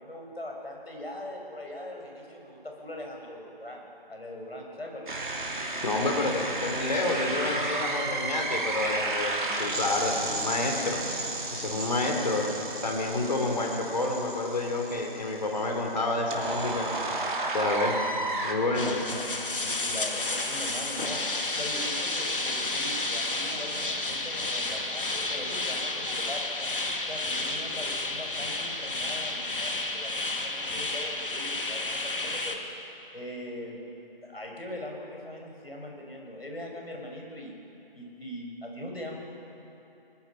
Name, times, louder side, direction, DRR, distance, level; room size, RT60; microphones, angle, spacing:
voice 1, 0.0-5.1 18.8-21.2 21.6-26.7 27.1-32.6 33.1-33.8 34.2-37.6 37.9-39.2, left 1 dB, 80° left, 0 dB, 5.8 m, -41 dB
sound 1, 5.1-18.5, right 2 dB, 55° right, 3.0 m, -33 dB
voice 2, 5.8-11.0 11.5-12.5 12.8-16.9 17.5-18.0 18.4-19.0, left 2 dB, 45° left, 1 dB, 3.4 m, -29 dB
sound 2, 18.7-32.6, left 2 dB, 60° left, 2.2 m, -31 dB
22.0 x 20.0 x 5.8 m, 2.9 s
figure-of-eight pair, 160°, 30 cm